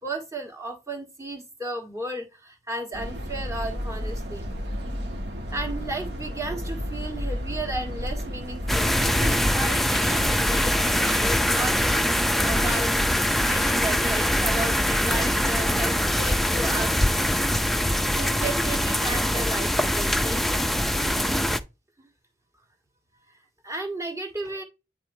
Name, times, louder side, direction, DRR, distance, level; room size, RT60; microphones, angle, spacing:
voice 1, 0.0-4.4 5.5-11.8 12.4-12.9 13.5-16.9 18.1-20.4 22.0-22.1 23.6-24.6, right 2 dB, 20° right, 1.6 m, -34 dB
sound 1, 2.9-9.5, equal, 75° right, 1.9 m, -32 dB
sound 2, 8.7-21.6, equal, ahead, 0.4 m, -23 dB
9.5 x 4.1 x 2.7 m
head